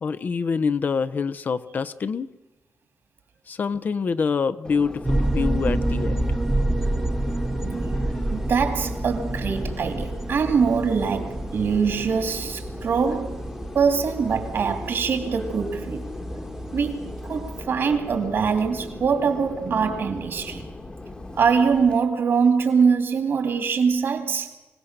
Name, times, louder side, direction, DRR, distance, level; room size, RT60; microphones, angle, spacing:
voice 1, 0.0-2.3 3.5-6.4, left 5 dB, 45° left, 0.7 m, -26 dB
Subway metro underground, 4.6-22.0, left 2 dB, 20° left, 1.3 m, -38 dB
sound 1, 5.0-17.6, right 1 dB, 15° right, 1.0 m, -29 dB
voice 2, 7.5-13.5 13.7-16.1 16.7-20.7 21.3-24.5, right 6 dB, 60° right, 2.6 m, -23 dB
25.0 x 17.5 x 6.6 m
wide cardioid pair, 165°, 4 cm